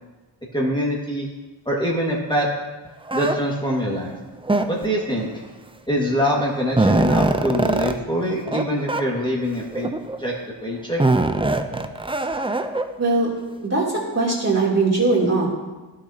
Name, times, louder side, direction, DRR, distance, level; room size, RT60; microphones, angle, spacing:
voice 1, 0.5-1.3 1.7-2.5 3.1-4.1 4.7-5.3 5.9-9.9 10.2-10.3 10.6-11.0, equal, 10° left, -4 dB, 1.8 m, -24 dB
sound 1, 3.1-3.3 4.4-5.0 6.0-6.1 6.4-7.9 8.5-8.6 8.9-9.0 9.7-10.2 11.0-12.8, right 2 dB, 10° right, 0.6 m, -21 dB
voice 2, 13.0-13.3 13.6-13.8 14.1-15.5, right 3 dB, 35° right, -5 dB, 3.0 m, -20 dB
11.5 x 6.6 x 2.8 m, 1.2 s
cardioid pair, 45°, 44 cm